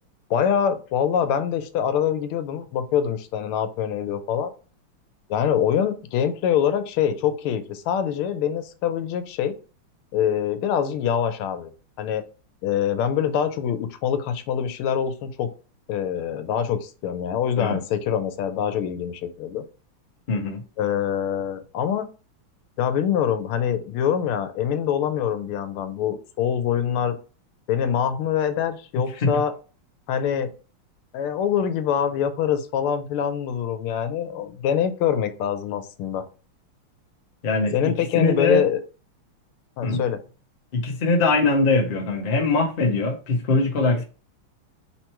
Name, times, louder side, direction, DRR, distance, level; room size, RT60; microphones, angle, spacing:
voice 1, 0.3-4.5 5.3-9.5 10.1-11.7 12.0-12.2 12.6-15.5 15.9-19.6 20.8-22.1 22.8-27.2 27.7-29.5 30.1-30.5 31.1-36.2 37.7-38.8 39.8-40.2, left 8 dB, 85° left, 1.5 m, -24 dB
voice 2, 20.3-20.6 29.2-29.4 37.4-38.6 39.8-40.0 40.7-44.0, left 3 dB, 60° left, 0.5 m, -22 dB
3.9 x 3.0 x 4.4 m
omnidirectional pair, 2.3 m